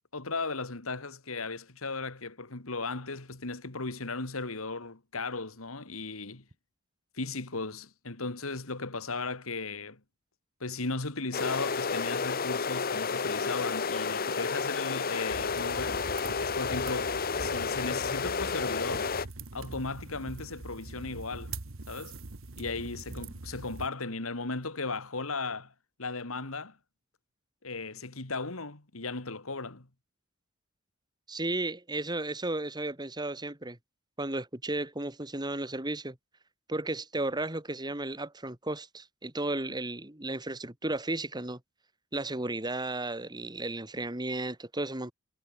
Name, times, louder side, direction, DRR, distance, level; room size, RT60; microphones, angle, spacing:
voice 1, 0.1-6.4 7.1-10.0 10.6-16.0 16.4-19.1 19.5-21.6 21.9-22.2 22.6-25.7 26.0-26.8 27.6-29.9, left 3 dB, 80° left, 2.4 m, -36 dB
sound 1, 11.3-19.3, left 5 dB, 45° left, 1.1 m, -31 dB
sound 2, 15.3-23.9, right 3 dB, 70° right, 1.4 m, -43 dB
voice 2, 31.3-33.8 34.2-36.2 36.7-41.6 42.1-45.1, right 2 dB, 20° right, 2.3 m, -34 dB
head